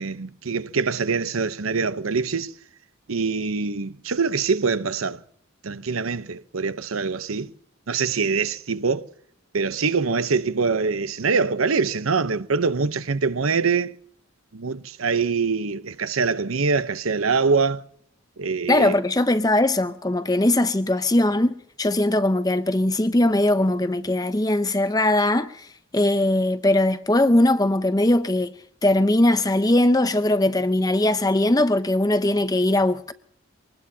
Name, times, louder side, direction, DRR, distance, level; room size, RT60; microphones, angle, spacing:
voice 1, 0.0-2.5 3.1-5.2 5.6-7.5 7.9-9.1 9.5-14.0 14.5-17.8 18.4-19.0, right 4 dB, 85° right, 0.8 m, -24 dB
voice 2, 18.7-25.7 25.9-28.5 28.8-33.1, left 1 dB, 20° left, 0.7 m, -20 dB
25.0 x 20.0 x 2.8 m
head